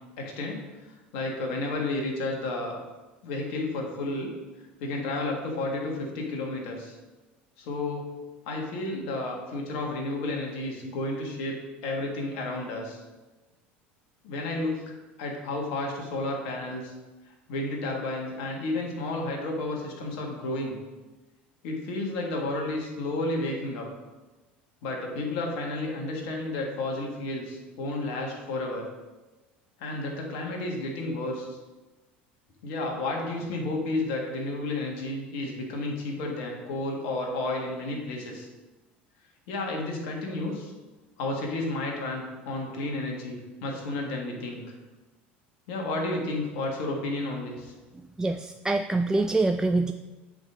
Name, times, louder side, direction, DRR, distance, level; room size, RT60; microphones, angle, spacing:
voice 1, 0.2-0.6 1.1-2.7 3.2-4.3 4.8-6.9 7.6-8.1 8.5-13.0 14.2-14.8 15.2-16.9 17.5-20.8 21.6-23.9 24.8-28.8 29.8-31.5 32.6-38.5 39.5-40.7 41.2-44.6 45.7-47.7, left 2 dB, 65° left, 0 dB, 1.6 m, -31 dB
voice 2, 48.2-49.9, right 2 dB, 10° right, 6 dB, 0.3 m, -25 dB
7.9 x 3.8 x 5.1 m, 1.2 s
hypercardioid pair, 75°, 6 cm